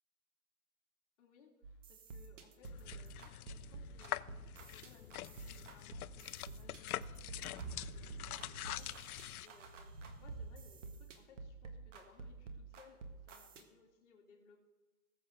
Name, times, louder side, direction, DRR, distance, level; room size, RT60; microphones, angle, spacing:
voice 1, 1.2-3.1 3.5-14.6, left 5 dB, 50° left, -1 dB, 2.8 m, -64 dB
sound 1, 1.6-13.6, right 4 dB, 55° right, 1.6 m, -51 dB
sound 2, 2.6-9.5, left 13 dB, 75° left, 0.6 m, -45 dB
sound 3, 7.1-12.0, right 3 dB, 85° right, 2.8 m, -51 dB
19.0 x 7.6 x 3.7 m, 1.2 s
hypercardioid pair, 165°, 45 cm